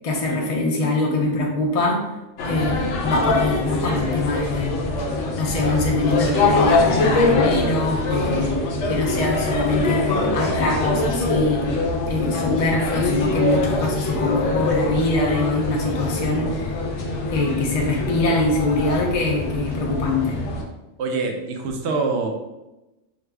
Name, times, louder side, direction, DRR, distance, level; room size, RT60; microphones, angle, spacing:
voice 1, 0.0-2.0 2.4-4.7 5.4-8.6 8.9-11.7 12.1-16.8 17.3-20.4, left 2 dB, 40° left, -1 dB, 0.6 m, -23 dB
sound 1, 2.4-20.6, left 2 dB, 70° left, 0.9 m, -23 dB
voice 2, 21.0-22.3, right 3 dB, 70° right, 3 dB, 0.8 m, -24 dB
4.9 x 2.5 x 2.2 m, 1.0 s
omnidirectional pair, 1.3 m